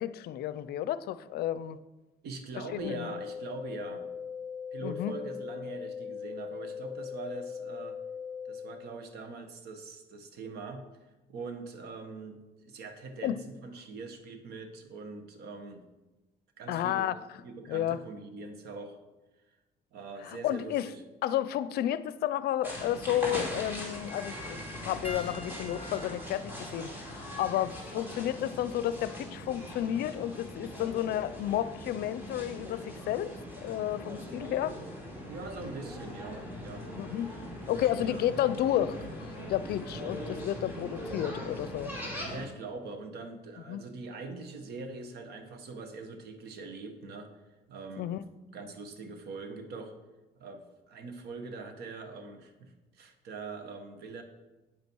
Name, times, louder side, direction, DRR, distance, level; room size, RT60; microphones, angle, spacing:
voice 1, 0.0-1.8 2.7-3.1 4.8-5.1 13.2-13.4 16.7-17.1 17.7-18.0 20.2-20.9 21.2-33.4 33.6-34.7 36.9-37.3 37.7-41.9 43.7-43.8 48.0-48.2, left 12 dB, 70° left, 15 dB, 0.5 m, -31 dB
voice 2, 2.2-4.1 4.7-8.0 8.4-10.8 11.3-15.9 16.6-17.1 17.4-19.0 19.9-21.0 35.3-36.9 37.7-38.3 42.3-47.3 47.7-48.2 48.5-49.9 50.4-54.2, right 3 dB, 70° right, 7 dB, 1.4 m, -43 dB
sound 1, 2.8-8.8, left 7 dB, 10° left, 1.6 m, -40 dB
sound 2, 22.6-42.5, equal, 10° right, 2.7 m, -41 dB
Piano, 25.0-29.7 30.6-30.8 32.8-32.9, left 2 dB, 35° left, 1.1 m, -48 dB
8.7 x 8.3 x 4.6 m, 1.1 s
cardioid pair, 110°, 17 cm